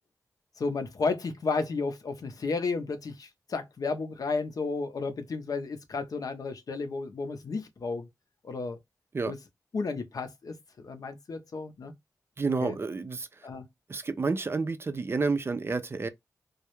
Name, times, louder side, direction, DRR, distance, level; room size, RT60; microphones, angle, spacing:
voice 1, 0.6-8.1 8.4-8.8 9.2-9.4 9.7-11.9 12.6-12.8 13.4-13.6, left 4 dB, 65° left, 0.5 m, -33 dB
voice 2, 12.4-13.5 13.9-16.1, right 4 dB, 35° right, 0.4 m, -30 dB
2.3 x 2.0 x 2.9 m
cardioid pair, 75°, 7 cm